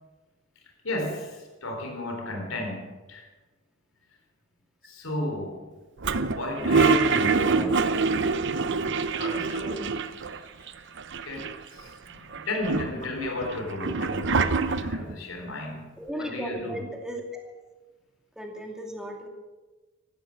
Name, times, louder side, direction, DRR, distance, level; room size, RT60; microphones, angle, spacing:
voice 1, 0.8-3.3 4.8-5.7 6.1-8.0 8.5-10.2 11.2-16.8, left 1 dB, 80° left, 3.9 m, -34 dB
Toilet flush, 6.0-10.4 10.7-10.8 11.0-11.8 12.3-15.1, right 4 dB, 60° right, 0.8 m, -25 dB
voice 2, 16.0-17.4 18.4-19.3, equal, 5° right, 2.5 m, -35 dB
16.0 x 12.5 x 7.2 m
head